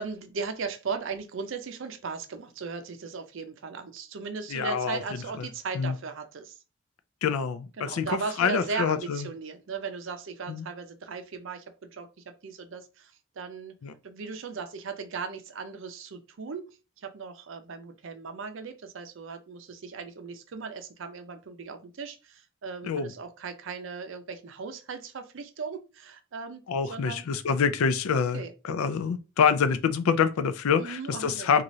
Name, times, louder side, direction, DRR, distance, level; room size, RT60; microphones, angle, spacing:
voice 1, 0.0-6.5 7.8-13.1 13.4-13.7 14.0-26.6 26.9-27.2 28.1-28.5 30.8-31.5, right 5 dB, 65° right, 0.5 m, -37 dB
voice 2, 4.5-5.5 5.7-6.0 7.2-9.3 10.5-10.7 13.8-13.9 22.8-23.1 26.7-31.6, left 6 dB, 90° left, 0.4 m, -26 dB
3.0 x 2.4 x 2.6 m
head